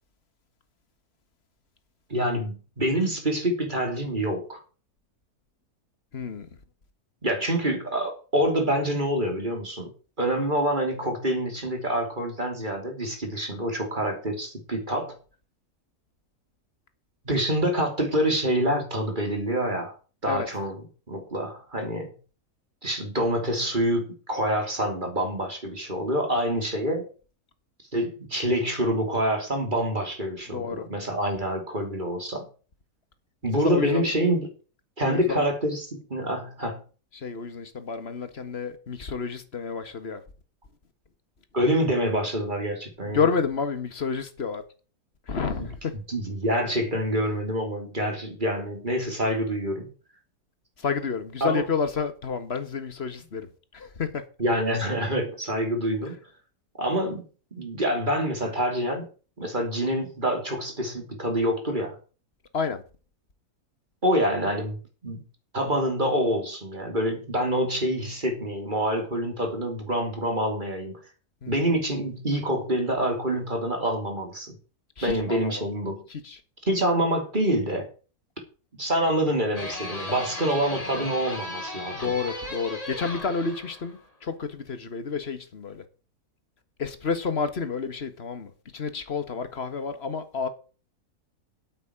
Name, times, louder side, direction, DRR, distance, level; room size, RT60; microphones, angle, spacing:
voice 1, 2.1-4.6 7.2-9.9 10.2-15.2 17.2-19.9 20.2-20.8 21.1-22.1 22.8-27.1 27.9-32.5 33.4-34.5 35.0-36.8 41.5-43.3 45.6-45.7 46.1-49.9 51.4-51.6 54.4-56.2 56.8-57.2 57.5-59.1 59.4-62.0 64.0-65.2 65.5-71.0 71.5-74.6 75.0-76.0 76.6-77.9 78.8-82.1, equal, 30° right, 3.4 m, -26 dB
voice 2, 6.1-6.5 20.3-20.5 30.5-30.9 33.6-34.1 35.0-35.5 37.1-40.2 43.0-44.6 45.3-46.0 50.8-53.5 53.7-54.3 62.5-62.8 71.4-71.6 75.0-75.7 76.1-76.4 80.1-80.3 81.9-85.8 86.8-90.5, left 5 dB, 45° left, 1.7 m, -30 dB
sound 1, 79.6-84.1, left 1 dB, 25° left, 3.1 m, -36 dB
8.7 x 8.6 x 8.8 m
omnidirectional pair, 1.6 m